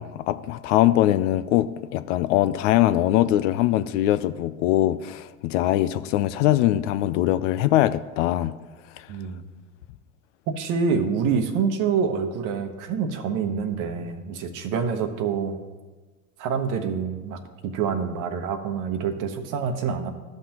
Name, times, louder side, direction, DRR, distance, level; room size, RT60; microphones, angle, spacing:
voice 1, 0.0-8.5, left 14 dB, 55° left, 14 dB, 0.5 m, -22 dB
voice 2, 9.1-9.4 10.5-15.6 16.4-20.1, right 6 dB, 45° right, 7 dB, 1.0 m, -26 dB
13.5 x 5.7 x 2.9 m, 1.3 s
hypercardioid pair, 95°, 44 cm